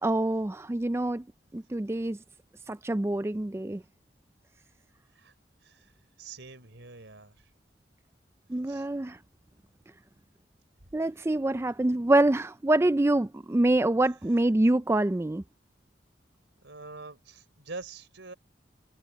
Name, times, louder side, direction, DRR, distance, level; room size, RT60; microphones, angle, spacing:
voice 1, 0.0-1.2 1.5-2.2 2.7-3.8 8.5-9.2 10.9-15.4, right 1 dB, 15° right, 0.4 m, -25 dB
voice 2, 6.2-7.4 8.7-8.9 16.6-18.3, right 3 dB, 90° right, 3.8 m, -44 dB
open air
head